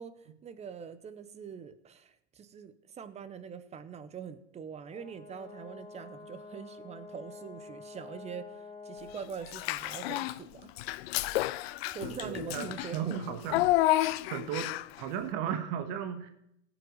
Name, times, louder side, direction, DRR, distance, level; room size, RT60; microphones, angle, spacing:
voice 1, 0.0-10.7 11.9-13.2, right 7 dB, 20° right, 13 dB, 0.8 m, -44 dB
Brass instrument, 4.9-9.4, left 4 dB, 20° left, 4.0 m, -48 dB
Child speech kid speaking / Bathtub (filling or washing), 9.5-10.4 10.8-15.0, left 16 dB, 60° left, 0.5 m, -30 dB
voice 2, 12.0-13.6 14.3-14.7 15.0-16.3, right 9 dB, 50° right, 7 dB, 1.5 m, -35 dB
17.5 x 8.0 x 4.0 m, 0.76 s
hypercardioid pair, 120°, 35 cm